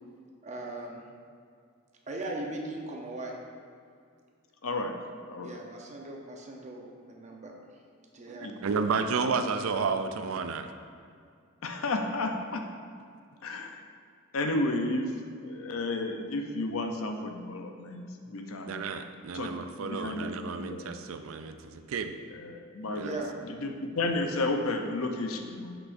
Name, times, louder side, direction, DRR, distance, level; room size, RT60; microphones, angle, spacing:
voice 1, 0.4-1.0 2.1-3.4 5.4-7.8 8.1-8.9 23.0-23.3, right 2 dB, 35° right, 0 dB, 0.8 m, -39 dB
voice 2, 4.6-5.0 5.3-5.5 8.4-8.5 8.8-8.9 10.3-10.4 11.6-12.7 13.4-13.8 14.3-15.1 15.4-18.8 19.3-20.9 22.3-23.2 23.4-25.8, left 2 dB, 85° left, 4 dB, 0.6 m, -32 dB
voice 3, 8.3-10.7 18.7-22.1 22.9-23.1, right 5 dB, 80° right, 8 dB, 0.4 m, -31 dB
8.0 x 6.0 x 2.6 m, 2.2 s
head